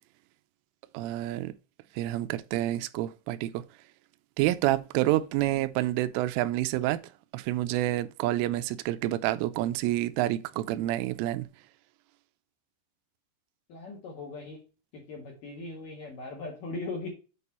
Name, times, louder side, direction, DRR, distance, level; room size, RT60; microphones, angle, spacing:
voice 1, 0.9-1.5 1.9-3.7 4.4-7.0 7.3-11.5, right 15 dB, 85° right, 3.1 m, -28 dB
voice 2, 13.7-14.6 14.9-17.1, left 3 dB, 55° left, 2.7 m, -39 dB
8.6 x 4.3 x 4.2 m
omnidirectional pair, 5.6 m